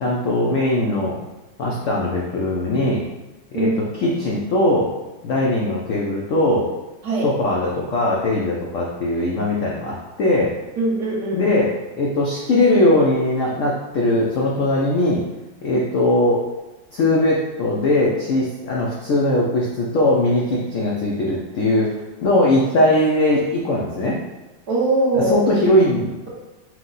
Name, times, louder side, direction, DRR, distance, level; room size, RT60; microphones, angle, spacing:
voice 1, 0.0-1.2 1.6-3.0 3.6-3.7 4.0-4.9 5.2-6.7 7.2-10.5 11.3-15.2 15.6-16.5 16.9-24.2 25.1-26.3, left 1 dB, 80° left, -3 dB, 0.7 m, -20 dB
voice 2, 10.8-11.4 24.7-25.4, right 2 dB, 60° right, -5 dB, 1.6 m, -21 dB
4.5 x 2.2 x 3.9 m, 1.1 s
omnidirectional pair, 2.0 m